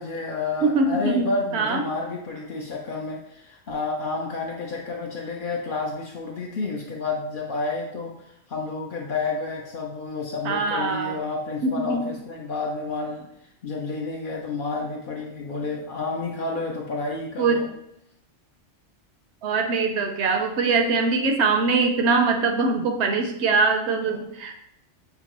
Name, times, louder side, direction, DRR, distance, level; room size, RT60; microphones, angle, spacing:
voice 1, 0.0-13.3 13.6-17.7 24.1-24.2, left 3 dB, 60° left, 0 dB, 0.6 m, -30 dB
voice 2, 0.6-1.3 1.5-1.8 10.4-11.2 11.6-12.0 17.4-17.7 19.4-24.5, right 4 dB, 70° right, 4 dB, 0.8 m, -22 dB
5.8 x 2.3 x 2.9 m, 0.77 s
omnidirectional pair, 1.2 m